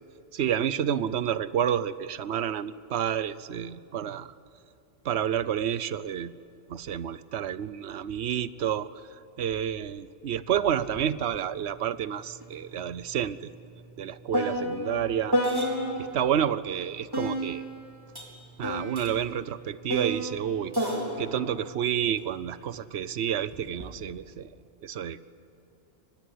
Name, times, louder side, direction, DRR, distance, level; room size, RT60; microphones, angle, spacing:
voice 1, 0.3-4.3 5.0-6.3 6.7-8.9 9.4-13.5 14.0-15.4 16.0-17.6 18.6-20.7 21.2-24.5 24.8-25.2, right 9 dB, 75° right, 16 dB, 1.0 m, -29 dB
sound 1, 11.0-11.1 11.4-16.2 17.1-22.7 23.5-23.9, equal, 20° right, 4.0 m, -32 dB
23.5 x 20.5 x 9.8 m, 2.7 s
omnidirectional pair, 1.1 m